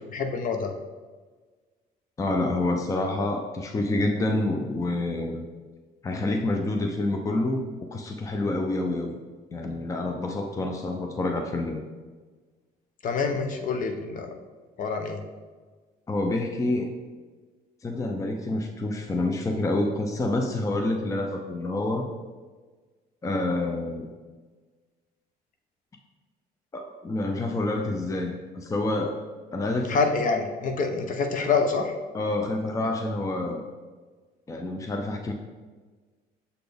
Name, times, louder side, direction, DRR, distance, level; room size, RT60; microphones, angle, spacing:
voice 1, 0.1-0.7 13.0-14.4 14.8-15.2 29.9-31.9, left 4 dB, 50° left, 5 dB, 0.7 m, -26 dB
voice 2, 2.2-5.5 6.0-9.2 9.5-11.8 16.1-17.0 17.8-22.1 23.2-24.1 26.7-29.2 29.5-30.0 32.1-33.6 34.5-35.3, left 2 dB, 20° left, 3 dB, 0.5 m, -28 dB
6.8 x 4.1 x 3.4 m, 1.4 s
cardioid pair, 110°, 17 cm